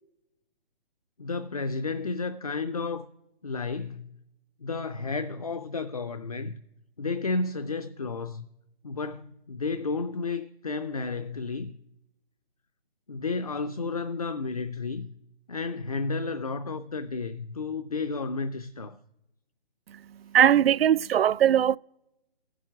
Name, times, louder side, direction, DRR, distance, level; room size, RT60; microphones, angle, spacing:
voice 1, 1.2-3.1 3.4-4.1 4.6-6.6 7.0-8.5 8.8-11.8 13.1-15.1 15.5-19.0, left 4 dB, 40° left, 0.5 m, -32 dB
voice 2, 20.3-21.8, right 10 dB, 75° right, 0.4 m, -20 dB
14.0 x 7.5 x 9.9 m
hypercardioid pair, 180°, 30 cm